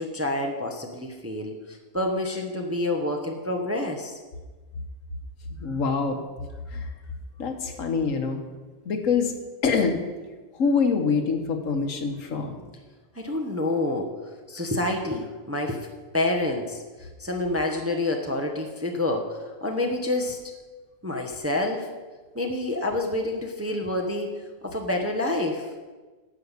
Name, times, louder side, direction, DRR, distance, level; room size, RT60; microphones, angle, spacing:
voice 1, 0.0-4.2 13.1-14.1 14.5-15.9 16.1-20.4 21.0-21.9 22.3-25.7, left 1 dB, 15° right, 1 dB, 0.8 m, -28 dB
voice 2, 5.6-6.2 6.7-6.9 7.4-8.4 8.8-9.3 9.6-10.0 10.5-12.5, left 5 dB, 70° left, 5 dB, 1.5 m, -25 dB
10.0 x 5.7 x 8.2 m, 1.3 s
omnidirectional pair, 1.4 m